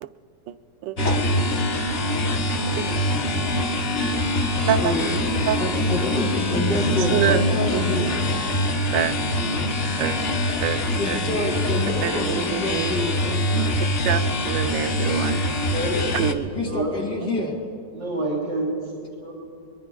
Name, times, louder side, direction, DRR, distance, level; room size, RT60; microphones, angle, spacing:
sound 1, 1.0-16.3, left 1 dB, 40° left, 1.0 m, -24 dB
voice 1, 4.8-5.2 5.6-8.2 10.9-13.2 16.5-17.5, left 2 dB, 65° left, -2 dB, 3.5 m, -27 dB
voice 2, 7.1-7.4 7.7-8.2 8.9-9.1 10.0-10.2 10.6-10.8 11.1-11.2 12.0-13.0 13.2-13.6 14.0-15.4 16.1-16.5 17.2-17.3, right 10 dB, 85° right, 10 dB, 1.3 m, -26 dB
voice 3, 15.6-16.1 16.6-16.9 17.9-18.9 19.2-19.3, right 1 dB, 60° right, -5 dB, 3.5 m, -28 dB
23.0 x 22.0 x 2.3 m, 2.5 s
omnidirectional pair, 1.9 m